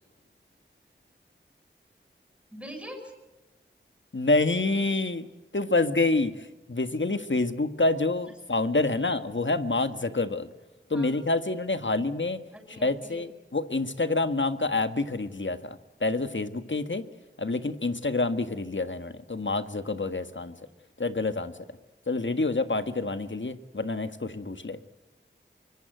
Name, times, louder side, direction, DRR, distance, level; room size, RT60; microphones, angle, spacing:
voice 1, 2.5-3.1 10.9-11.2 12.5-13.3, equal, 5° right, 4 dB, 7.0 m, -43 dB
voice 2, 4.1-5.2 5.5-10.5 10.9-12.4 12.8-17.0 17.4-20.5 21.0-21.5 22.1-24.8, left 2 dB, 70° left, 10 dB, 1.6 m, -27 dB
24.5 x 23.0 x 7.9 m, 1.0 s
wide cardioid pair, 40°, 20 cm